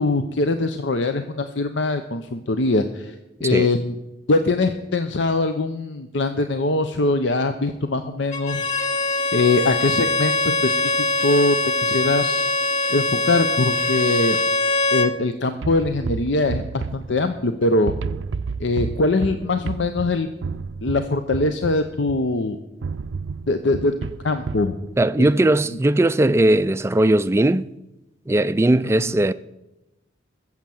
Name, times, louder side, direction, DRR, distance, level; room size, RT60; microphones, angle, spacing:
voice 1, 0.0-3.1 3.4-4.0 4.3-9.0 9.3-12.5 12.9-14.4 14.9-17.9 18.6-20.3 20.8-22.6 23.5-23.9 24.2-24.8 25.2-25.4 29.0-29.2, left 2 dB, 70° left, 0.7 m, -22 dB
Bowed string instrument, 8.3-15.2, left 3 dB, 40° left, 1.0 m, -22 dB
sound 1, 15.6-17.5 17.9-22.3 22.8-24.8, right 4 dB, 80° right, 0.5 m, -31 dB
voice 2, 25.0-27.7 28.3-29.3, right 1 dB, 15° right, 0.3 m, -18 dB
14.0 x 7.4 x 7.7 m
head